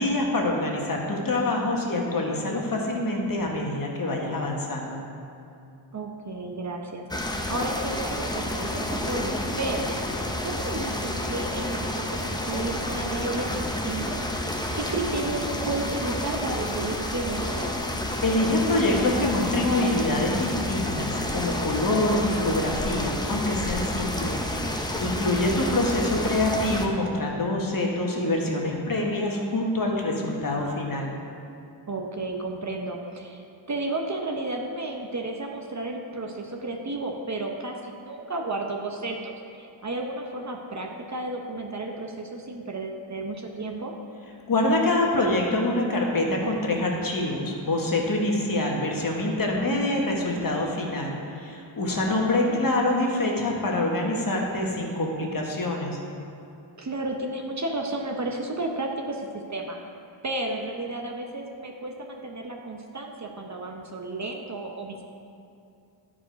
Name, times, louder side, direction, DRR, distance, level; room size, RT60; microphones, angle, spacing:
voice 1, 0.0-5.0 18.2-24.4 25.0-31.1 44.5-56.0, left 2 dB, 45° left, -1 dB, 1.4 m, -25 dB
voice 2, 5.9-9.9 10.4-14.3 14.7-17.8 25.1-25.4 31.9-43.9 49.7-50.1 51.9-52.7 56.8-59.8 60.2-65.0, right 2 dB, 35° right, 2 dB, 0.8 m, -32 dB
sound 1, 7.1-26.9, left 1 dB, 10° left, 0.6 m, -30 dB
11.5 x 5.0 x 5.1 m, 2.6 s
wide cardioid pair, 115°, 48 cm